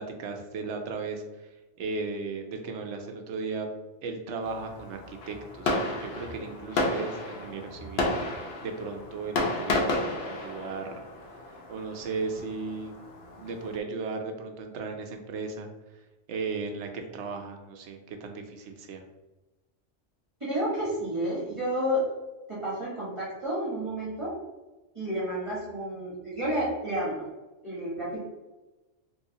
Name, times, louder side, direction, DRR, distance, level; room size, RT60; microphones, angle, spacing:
voice 1, 0.0-1.5 1.8-3.7 4.0-8.1 8.6-10.9 11.7-12.9 13.4-15.7 16.3-19.0, right 4 dB, 70° right, 4 dB, 0.8 m, -36 dB
Fireworks, 4.4-13.8, left 2 dB, 65° left, 0.8 m, -32 dB
voice 2, 20.4-22.1 22.5-24.4 24.9-27.2 27.6-28.3, equal, 25° right, -8 dB, 1.1 m, -30 dB
3.1 x 3.1 x 2.7 m, 1.1 s
omnidirectional pair, 1.3 m